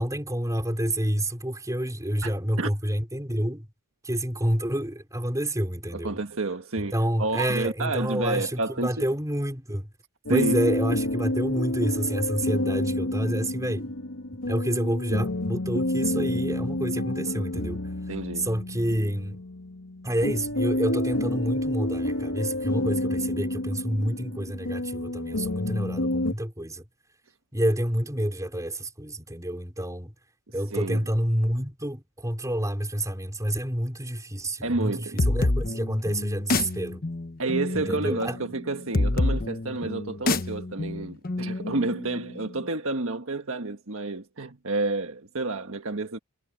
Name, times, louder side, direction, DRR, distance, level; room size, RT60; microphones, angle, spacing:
voice 1, 0.0-3.7 4.0-6.2 6.9-9.9 10.3-13.9 14.5-17.8 18.4-19.4 20.0-26.8 27.5-30.1 30.5-37.0 37.9-38.4, right 1 dB, 15° right, 4.4 m, -28 dB
voice 2, 2.2-2.7 5.9-9.1 10.3-10.6 18.1-18.5 30.7-31.1 34.6-35.2 37.4-46.2, right 2 dB, 65° right, 1.7 m, -30 dB
sound 1, 10.3-26.3, left 1 dB, 75° left, 2.8 m, -29 dB
sound 2, 35.2-42.6, left 2 dB, 45° left, 1.0 m, -28 dB
head